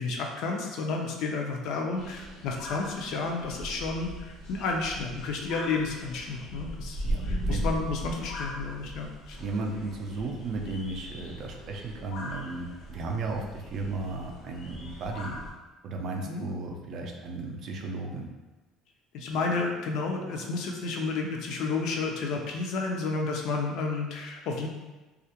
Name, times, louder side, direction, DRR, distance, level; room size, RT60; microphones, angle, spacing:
voice 1, 0.0-9.4 16.2-16.5 19.1-24.7, left 3 dB, 65° left, 1 dB, 0.4 m, -31 dB
sound 1, 2.0-15.5, equal, 85° left, 0.8 m, -38 dB
voice 2, 7.0-7.6 9.4-15.4 15.8-18.3, right 3 dB, 45° right, 1 dB, 0.3 m, -35 dB
2.3 x 2.1 x 2.8 m, 1.2 s
cardioid pair, 140°, 0 cm